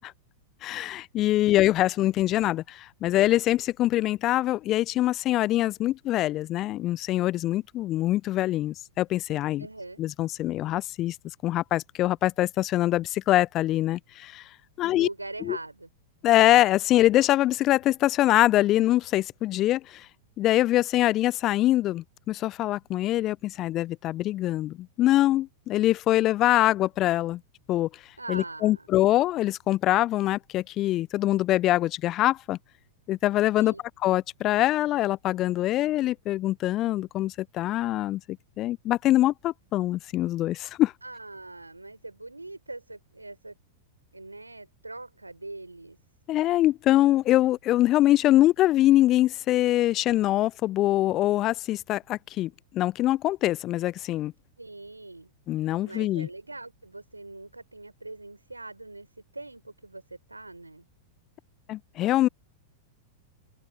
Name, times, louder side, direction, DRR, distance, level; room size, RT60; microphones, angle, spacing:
voice 1, 0.6-9.7 10.0-11.2 11.4-14.4 14.8-15.1 15.4-15.6 16.2-20.1 20.4-27.4 27.7-27.9 28.3-32.6 33.1-33.7 34.0-38.2 38.6-40.9 46.3-54.3 55.5-56.3 61.7-62.3, left 15 dB, 35° left, 0.6 m, -24 dB
voice 2, 9.6-10.0 14.9-15.9 28.2-28.9 33.6-33.8 41.0-43.5 44.1-46.0 54.6-55.3 55.8-59.1 59.3-60.8, right 2 dB, 90° right, 4.0 m, -42 dB
open air
figure-of-eight pair, 95°, 0 cm